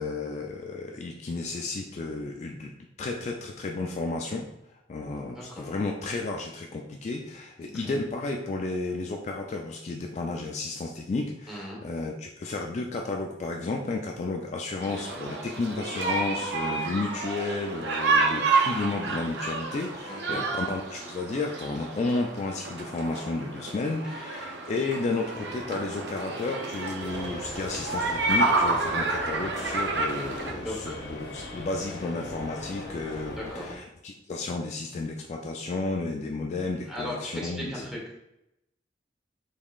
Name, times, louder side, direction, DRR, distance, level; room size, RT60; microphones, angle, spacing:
voice 1, 0.0-2.7 3.0-37.8, left 3 dB, 40° left, 2 dB, 0.3 m, -32 dB
voice 2, 5.3-5.6 7.6-7.9 11.5-11.8 20.1-20.4 30.6-31.0 33.4-33.7 36.9-38.2, left 1 dB, 5° right, -4 dB, 0.9 m, -37 dB
sound 1, 14.8-30.5, right 3 dB, 70° right, 0.6 m, -29 dB
sound 2, 27.0-33.7, left 1 dB, 75° left, 0.8 m, -40 dB
3.6 x 3.6 x 2.3 m, 0.84 s
head